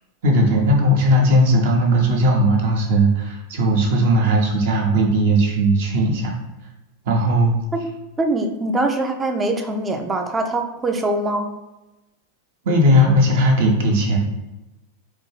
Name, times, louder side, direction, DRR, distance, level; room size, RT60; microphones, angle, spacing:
voice 1, 0.2-6.3 7.1-7.6 12.6-14.2, equal, 55° right, 1 dB, 0.7 m, -17 dB
voice 2, 8.2-11.5, right 2 dB, 15° right, 5 dB, 0.4 m, -23 dB
4.2 x 2.3 x 3.1 m, 1.0 s
figure-of-eight pair, 90°, 0 cm